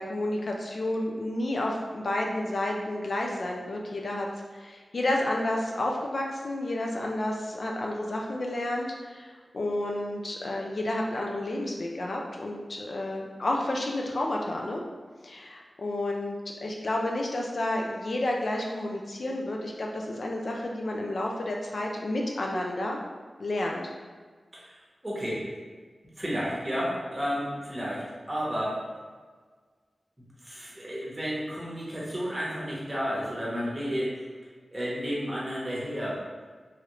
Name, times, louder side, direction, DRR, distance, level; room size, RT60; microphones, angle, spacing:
voice 1, 0.0-14.8 15.2-23.0 23.4-23.9, left 1 dB, 55° left, 0 dB, 0.3 m, -31 dB
voice 2, 25.0-25.5 26.2-28.8 30.4-34.2 34.7-36.2, equal, 20° right, -6 dB, 0.9 m, -32 dB
3.0 x 2.4 x 3.0 m, 1.5 s
wide cardioid pair, 115°, 0 cm